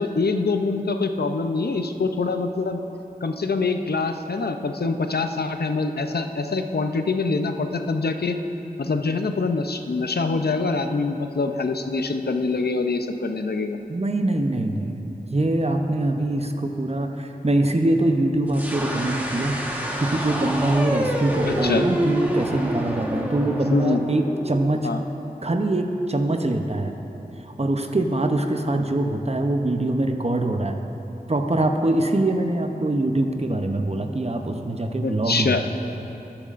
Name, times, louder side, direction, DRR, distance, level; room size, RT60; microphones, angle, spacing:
voice 1, 0.0-2.8 3.2-8.4 8.8-13.8 21.4-21.9 23.7-24.0 24.8-25.0 35.0-35.6, left 3 dB, 80° left, 6 dB, 0.5 m, -24 dB
voice 2, 13.9-19.6 20.0-24.9 25.4-27.0 27.4-30.8 31.3-35.6, right 2 dB, 40° right, 5 dB, 0.7 m, -23 dB
sound 1, 18.5-25.3, equal, 10° right, 1.3 m, -28 dB
12.5 x 11.5 x 2.5 m, 2.9 s
wide cardioid pair, 40°, 16 cm